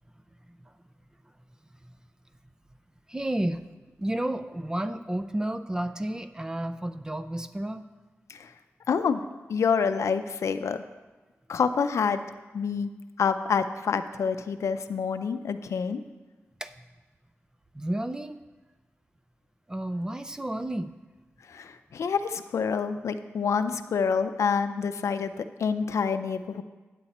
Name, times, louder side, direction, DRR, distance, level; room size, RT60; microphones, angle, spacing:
voice 1, 3.1-3.6 4.0-7.9 16.6-16.7 17.7-18.4 19.7-20.9, right 1 dB, 15° right, 10 dB, 0.4 m, -31 dB
voice 2, 8.9-9.2 9.5-10.8 11.5-12.2 12.5-12.9 13.2-16.0 21.5-26.6, left 6 dB, 85° left, 10 dB, 0.4 m, -27 dB
9.1 x 7.8 x 4.2 m, 1.2 s
wide cardioid pair, 120°, 5 cm